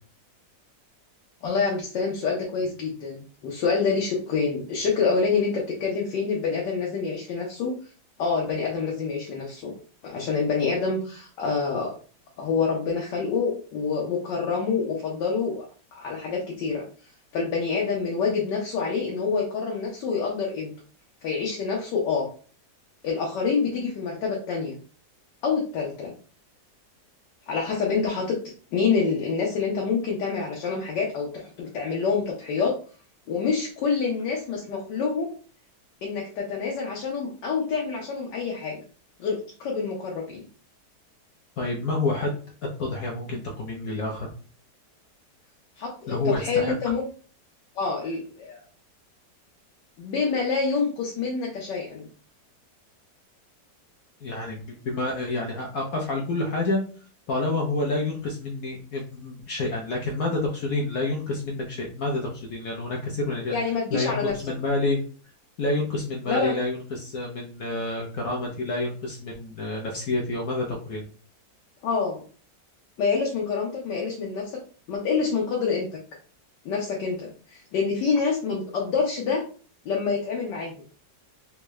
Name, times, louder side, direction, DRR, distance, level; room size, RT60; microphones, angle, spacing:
voice 1, 1.4-7.8 8.2-9.7 10.0-11.9 12.4-16.8 17.3-20.7 21.2-22.3 23.0-24.8 25.4-26.1 27.5-32.8 33.3-35.3 36.0-38.8 39.2-40.4 45.8-47.1 47.7-48.6 50.0-52.1 63.5-64.3 66.3-66.6 71.8-72.2 73.0-74.6 74.9-76.0 76.6-79.4 79.8-80.8, left 5 dB, 85° left, -2 dB, 1.4 m, -27 dB
voice 2, 41.6-42.4 42.8-44.3 46.1-46.7 54.2-56.8 57.3-63.5 63.9-65.0 65.6-71.0, left 2 dB, 65° left, 0 dB, 1.0 m, -28 dB
3.7 x 2.2 x 3.0 m, 0.40 s
omnidirectional pair, 1.9 m